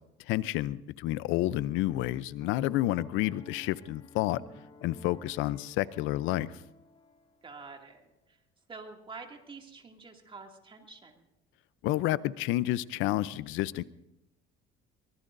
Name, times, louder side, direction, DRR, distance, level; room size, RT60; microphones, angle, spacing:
voice 1, 0.3-4.4 4.8-6.5 11.8-13.8, left 15 dB, 75° left, 18 dB, 0.6 m, -30 dB
Piano, 2.4-7.7, left 3 dB, 25° left, 1.5 m, -52 dB
voice 2, 7.4-8.4 8.7-11.3, right 4 dB, 25° right, 2 dB, 2.3 m, -47 dB
23.5 x 21.0 x 2.6 m, 0.90 s
cardioid pair, 115°, 21 cm